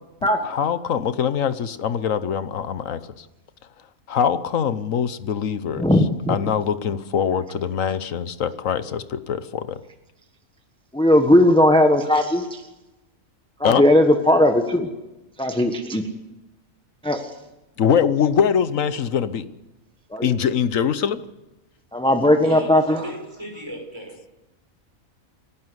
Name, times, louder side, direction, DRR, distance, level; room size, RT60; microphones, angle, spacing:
voice 1, 0.2-3.2 4.1-5.9 6.3-9.8 13.6-13.8 17.8-19.4 20.2-21.2, left 7 dB, 70° left, 13 dB, 1.3 m, -23 dB
voice 2, 5.8-6.4 10.9-12.6 13.6-14.9 15.4-16.0 17.0-17.2 20.1-20.3 21.9-23.0, left 1 dB, 5° left, 5 dB, 1.3 m, -17 dB
voice 3, 22.4-24.3, right 1 dB, 20° right, 1 dB, 5.6 m, -37 dB
28.5 x 11.5 x 8.0 m, 1.0 s
omnidirectional pair, 1.4 m